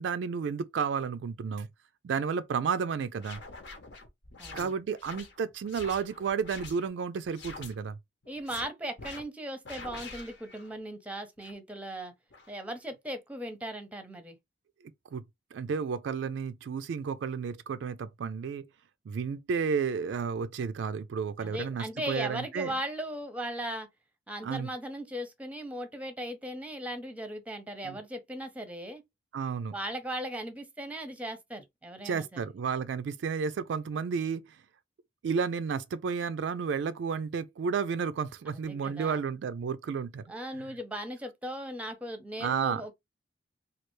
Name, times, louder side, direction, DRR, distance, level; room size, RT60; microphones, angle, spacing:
voice 1, 0.0-1.7 2.0-3.4 4.5-8.0 15.1-15.2 15.5-18.7 19.1-22.7 24.4-24.7 27.8-28.0 29.3-29.8 32.0-34.6 35.2-40.2 40.6-40.7 42.4-42.8, right 6 dB, 70° right, 0.3 m, -32 dB
sound 1, 3.1-6.9 7.2-7.8 8.2-8.6 9.0-9.2 9.7-10.8 11.4-11.5 12.3-12.6, left 3 dB, 70° left, 0.9 m, -46 dB
voice 2, 4.4-4.7 8.3-12.1 12.5-14.4 21.4-23.9 24.3-29.0 29.7-32.4 38.5-39.2 40.3-42.9, right 1 dB, 10° right, 0.6 m, -38 dB
3.2 x 2.3 x 3.1 m
head